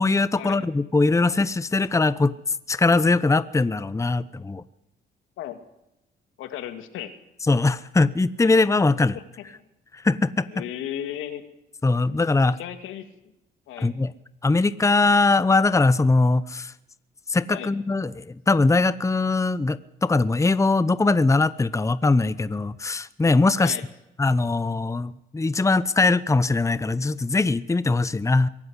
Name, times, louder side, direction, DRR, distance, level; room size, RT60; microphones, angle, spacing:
voice 1, 0.0-2.3 2.7-4.6 7.5-9.2 9.9-10.5 11.8-12.6 13.8-14.1 14.4-16.7 17.3-23.8 24.2-28.5, left 3 dB, 15° left, 16 dB, 0.8 m, -21 dB
voice 2, 6.4-7.1 9.1-9.2 10.5-11.4 12.3-13.1 13.7-13.9 17.5-17.7 23.6-23.8, left 11 dB, 90° left, 8 dB, 2.5 m, -35 dB
23.5 x 13.5 x 9.8 m, 0.89 s
cardioid pair, 90°, 20 cm